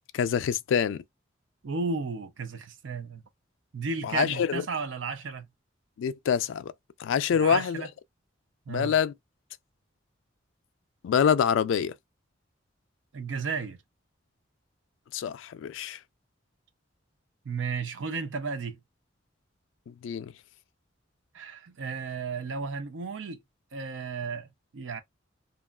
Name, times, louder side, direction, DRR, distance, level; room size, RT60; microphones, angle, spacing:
voice 1, 0.1-1.0 4.0-4.6 6.0-6.7 7.0-7.9 8.7-9.1 11.0-11.9 15.1-16.0 19.9-20.3, left 7 dB, 75° left, 0.3 m, -26 dB
voice 2, 1.6-3.2 3.7-5.5 7.3-7.9 8.7-8.9 13.1-13.8 17.4-18.8 21.3-23.4 23.7-24.5 24.7-25.0, right 4 dB, 75° right, 0.5 m, -33 dB
2.9 x 2.3 x 2.2 m
head